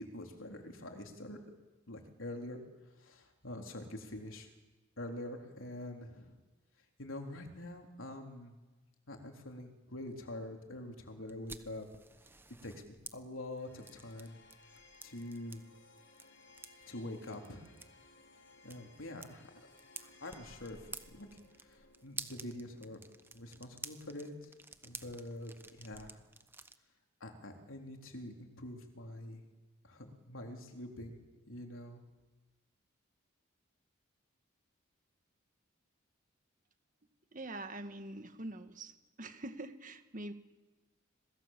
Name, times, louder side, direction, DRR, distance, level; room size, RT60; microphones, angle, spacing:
voice 1, 0.0-1.4 1.9-2.6 3.0-4.5 5.0-6.4 7.0-8.5 9.1-11.9 12.6-12.8 13.1-14.4 15.0-15.6 16.9-17.7 18.6-19.5 20.0-20.8 21.1-21.3 21.7-23.0 23.3-24.5 24.8-26.2 27.2-29.4 29.8-32.0, left 1 dB, 80° left, 3 dB, 3.8 m, -45 dB
sound 1, 11.3-26.8, right 4 dB, 10° right, 1.0 m, -52 dB
sound 2, 13.6-24.6, left 3 dB, 60° left, 4.7 m, -62 dB
voice 2, 37.3-40.3, right 2 dB, 40° right, 8 dB, 1.7 m, -44 dB
27.0 x 21.0 x 7.5 m, 1.2 s
head